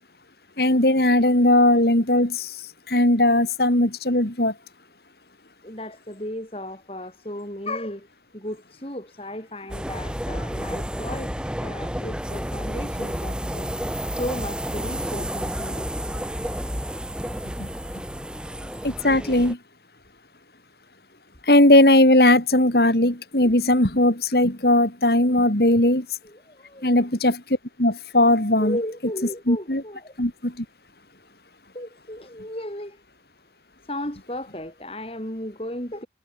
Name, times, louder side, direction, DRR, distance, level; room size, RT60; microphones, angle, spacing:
voice 1, 0.6-2.6 2.9-4.5 17.6-17.7 18.8-19.6 21.4-26.1 26.8-28.8 29.5-29.8 30.2-30.6, left 1 dB, 60° left, 4.1 m, -18 dB
voice 2, 5.6-8.1 8.3-11.3 11.6-13.7 14.1-15.9 16.1-16.2 23.4-23.5 26.2-27.1 28.6-30.2 31.7-33.0 33.9-36.1, left 1 dB, 30° left, 5.9 m, -34 dB
sound 1, 9.7-19.5, equal, 5° right, 4.8 m, -31 dB
head